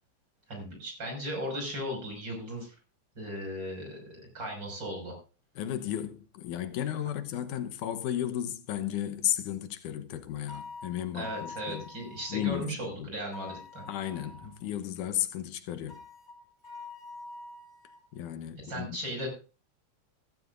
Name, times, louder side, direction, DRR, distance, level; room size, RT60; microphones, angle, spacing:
voice 1, 0.5-2.7 3.2-5.1 11.1-13.8 18.6-19.3, equal, 35° right, 6.4 m, -37 dB
voice 2, 5.6-11.9 12.3-12.7 13.0-13.1 13.9-16.0 18.1-19.0, left 11 dB, 90° left, 2.5 m, -34 dB
sound 1, 10.5-12.6 13.3-14.6 15.9-18.1, left 3 dB, 25° left, 1.7 m, -45 dB
15.0 x 15.0 x 2.6 m
omnidirectional pair, 3.5 m